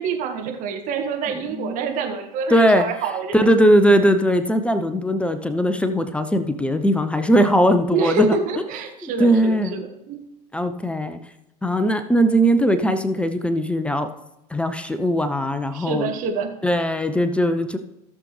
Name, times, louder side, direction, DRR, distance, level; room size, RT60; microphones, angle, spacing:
voice 1, 0.0-3.4 7.9-10.2 15.7-16.5, right 5 dB, 40° right, 3 dB, 1.9 m, -26 dB
voice 2, 1.3-1.9 2.5-2.9 3.3-8.4 9.0-9.8 10.5-11.2 11.6-14.1 14.5-16.1 16.6-17.8, equal, 5° left, 9 dB, 0.7 m, -19 dB
16.5 x 6.7 x 3.2 m, 0.90 s
figure-of-eight pair, 80°, 21 cm